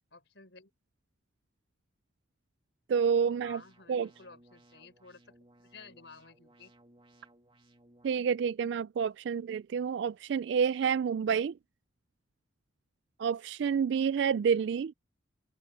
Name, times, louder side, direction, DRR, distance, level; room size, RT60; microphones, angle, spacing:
voice 1, 0.1-0.7 3.4-5.4 5.6-6.7, left 4 dB, 65° left, 5.0 m, -53 dB
voice 2, 2.9-3.6 3.9-4.1 8.0-11.6 13.2-14.9, right 6 dB, 60° right, 0.3 m, -29 dB
sound 1, 3.2-8.2, right 1 dB, 25° right, 2.5 m, -62 dB
head